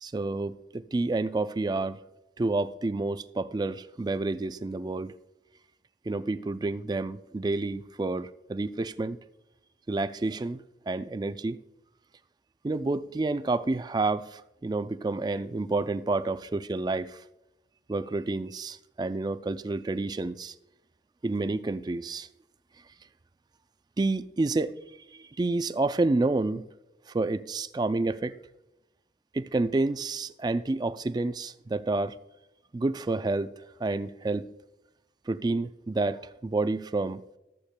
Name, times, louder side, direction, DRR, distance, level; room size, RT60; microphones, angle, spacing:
voice 1, 0.0-2.0 2.4-5.1 6.1-9.2 9.9-10.6 10.9-11.6 12.6-17.2 17.9-20.5 21.2-22.3 24.0-24.7 25.1-26.6 27.1-28.3 29.3-32.1 32.7-33.5 33.8-34.4 35.3-37.2, right 2 dB, 25° right, 0.3 m, -29 dB
14.0 x 8.2 x 2.2 m
head